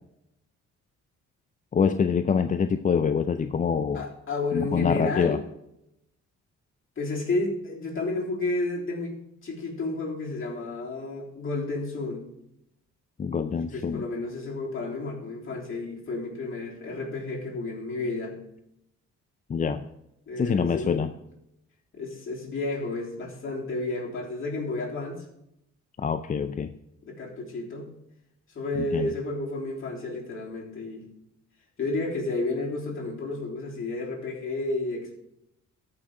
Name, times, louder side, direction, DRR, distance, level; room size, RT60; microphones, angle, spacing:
voice 1, 1.7-4.1 4.5-5.4 13.2-14.0 19.5-19.9 20.4-21.1 26.0-26.7 28.9-29.1, left 6 dB, 25° left, 9 dB, 0.4 m, -25 dB
voice 2, 3.9-5.4 7.0-12.3 13.5-18.4 20.3-21.0 21.9-25.3 27.0-27.9 28.6-31.0 31.8-35.1, left 2 dB, 45° left, -4 dB, 3.5 m, -31 dB
14.0 x 6.0 x 3.7 m, 0.82 s
cardioid pair, 90°, 30 cm